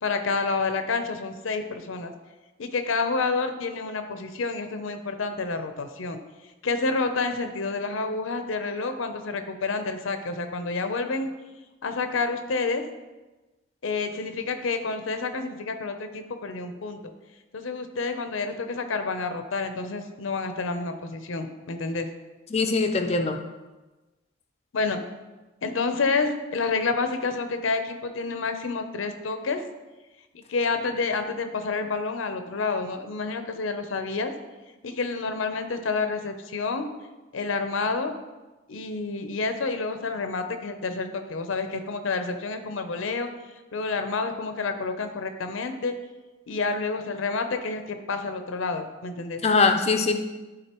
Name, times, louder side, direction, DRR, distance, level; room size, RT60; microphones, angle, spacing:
voice 1, 0.0-2.1 2.6-6.2 6.6-11.3 11.8-12.8 13.8-17.1 17.5-22.1 24.7-25.0 25.6-29.6 30.5-34.3 34.8-36.9 37.3-38.1 38.7-43.3 43.7-46.0 46.5-49.4, left 4 dB, 85° left, 7 dB, 0.6 m, -29 dB
voice 2, 22.5-23.4 49.4-50.1, left 4 dB, 30° left, 6 dB, 0.5 m, -22 dB
11.0 x 3.9 x 3.0 m, 1.2 s
head